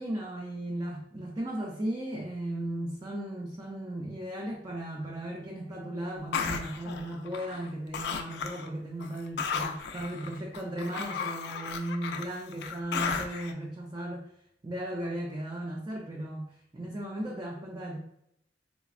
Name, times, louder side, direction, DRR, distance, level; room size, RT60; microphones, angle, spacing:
voice 1, 0.0-14.3 14.6-18.0, right 1 dB, 25° right, -1 dB, 0.3 m, -36 dB
sound 1, 6.3-7.7 7.9-8.7 9.0-13.5, left 6 dB, 65° left, 0.3 m, -34 dB
4.0 x 2.0 x 2.4 m, 0.74 s
head